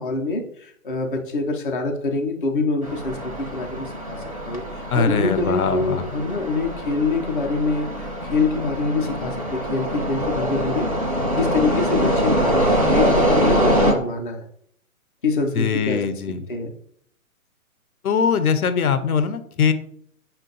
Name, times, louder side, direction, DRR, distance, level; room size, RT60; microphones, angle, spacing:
voice 1, 0.0-10.9 11.3-14.5 15.2-16.0 16.5-16.7, left 3 dB, 40° left, 2 dB, 0.5 m, -25 dB
sound 1, 2.8-13.9, equal, 25° right, 0.4 m, -24 dB
voice 2, 4.9-6.0 15.5-16.5 18.0-19.7, left 6 dB, 80° left, 10 dB, 0.7 m, -21 dB
5.7 x 2.2 x 3.8 m, 0.66 s
hypercardioid pair, 165°, 44 cm